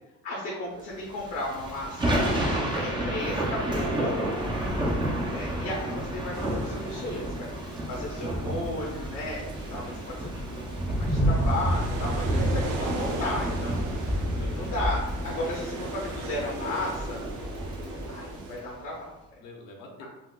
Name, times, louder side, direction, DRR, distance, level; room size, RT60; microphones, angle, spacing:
voice 1, 0.2-2.2 2.7-4.1 5.3-14.2 14.5-17.2 18.1-19.4 20.0-20.1, left 1 dB, 45° left, -4 dB, 0.7 m, -34 dB
Thunder / Rain, 1.1-18.6, right 1 dB, 15° right, 0.4 m, -30 dB
voice 2, 2.4-3.0 4.7-5.1 12.3-12.4 14.3-14.8 17.7-18.6 19.4-20.1, left 2 dB, 80° left, 0 dB, 0.9 m, -44 dB
sound 1, 6.3-18.6, right 2 dB, 65° right, 0.6 m, -39 dB
4.0 x 2.4 x 2.2 m, 0.98 s
cardioid pair, 155°, 33 cm